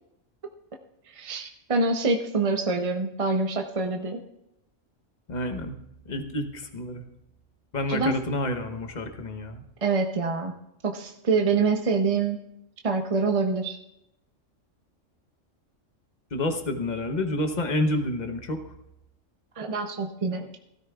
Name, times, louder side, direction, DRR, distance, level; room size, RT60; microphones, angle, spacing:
voice 1, 1.1-4.2 7.9-8.2 9.8-10.5 10.8-12.4 12.8-13.8 19.6-20.6, right 4 dB, 35° right, 4 dB, 0.5 m, -26 dB
voice 2, 5.3-5.8 6.0-7.0 7.7-9.6 16.3-18.7, left 1 dB, 40° left, 7 dB, 1.0 m, -29 dB
16.0 x 13.0 x 2.3 m, 0.84 s
omnidirectional pair, 1.3 m